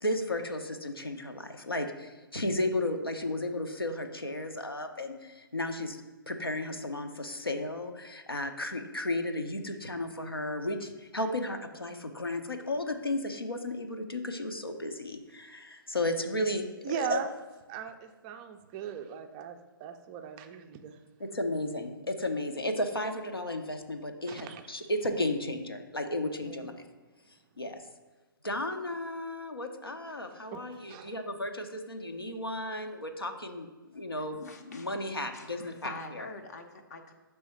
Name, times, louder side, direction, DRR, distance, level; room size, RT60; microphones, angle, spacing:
voice 1, 0.0-6.0 6.3-16.7 16.9-17.2 21.2-26.7 27.6-27.8 28.4-36.2, left 1 dB, 85° left, 5 dB, 0.7 m, -34 dB
voice 2, 16.8-17.3 17.7-21.0 24.3-24.6 26.4-26.7 30.5-31.1, right 8 dB, 20° right, 7 dB, 0.4 m, -38 dB
voice 3, 34.2-34.9 35.3-37.1, left 3 dB, 45° left, 5 dB, 0.6 m, -45 dB
6.2 x 3.4 x 5.4 m, 1.2 s
figure-of-eight pair, 125°, 12 cm